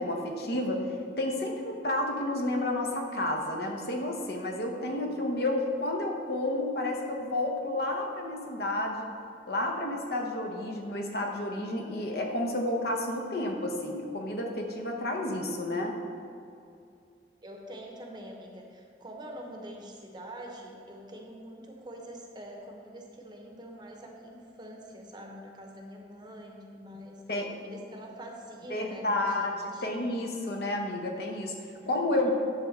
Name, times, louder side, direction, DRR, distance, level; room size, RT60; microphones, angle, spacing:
voice 1, 0.0-9.1 9.5-15.9 27.3-27.5 28.7-29.5 29.8-32.3, left 1 dB, 60° left, 2 dB, 1.0 m, -31 dB
voice 2, 17.4-27.2 27.6-30.0 31.8-32.3, equal, 25° right, 1 dB, 0.8 m, -45 dB
10.0 x 3.7 x 6.5 m, 2.5 s
head